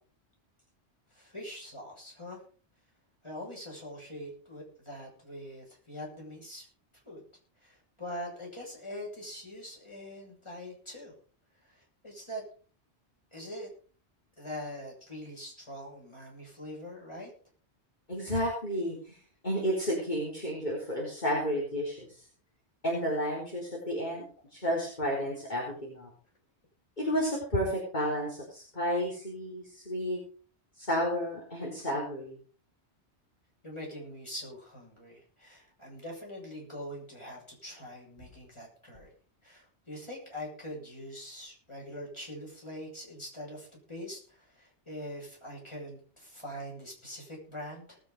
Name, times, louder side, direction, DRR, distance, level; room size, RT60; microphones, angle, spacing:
voice 1, 1.1-2.4 3.2-6.7 7.1-7.2 7.6-11.1 11.7-12.4 13.3-13.7 14.4-17.3 33.6-39.1 39.4-48.0, equal, 25° left, -2 dB, 7.0 m, -43 dB
voice 2, 18.1-19.2 19.4-22.2 22.8-24.2 24.5-26.1 27.0-30.2 30.8-32.4, equal, 40° left, -3 dB, 4.0 m, -31 dB
19.0 x 8.9 x 5.2 m, 0.42 s
omnidirectional pair, 1.1 m